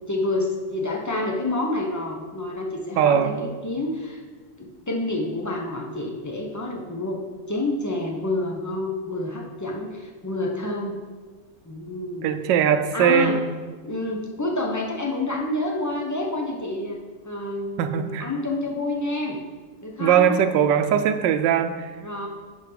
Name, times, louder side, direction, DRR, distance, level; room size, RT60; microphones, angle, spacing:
voice 1, 0.1-4.2 4.6-7.2 7.5-11.0 11.6-12.3 12.9-13.4 13.8-17.0 17.2-19.4 19.8-20.4 22.0-22.3, left 2 dB, 15° left, -1 dB, 0.7 m, -28 dB
voice 2, 3.0-3.4 12.2-13.4 17.8-18.3 20.0-21.9, right 8 dB, 85° right, 9 dB, 1.3 m, -20 dB
10.5 x 4.7 x 5.1 m, 1.4 s
omnidirectional pair, 1.9 m